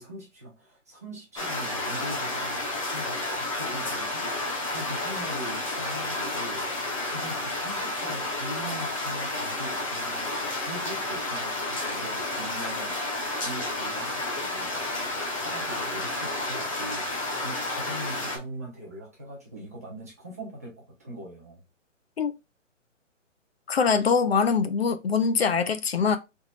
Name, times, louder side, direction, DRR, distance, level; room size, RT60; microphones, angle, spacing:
voice 1, 0.0-4.2 4.7-10.3 10.7-13.0 13.4-14.8 15.3-17.0 17.4-21.6, right 1 dB, 15° right, 0.6 m, -41 dB
sound 1, 1.4-18.4, left 2 dB, 25° left, 0.8 m, -31 dB
voice 2, 23.7-26.2, left 5 dB, 50° left, 0.6 m, -23 dB
3.5 x 3.1 x 3.9 m
hypercardioid pair, 170°, 38 cm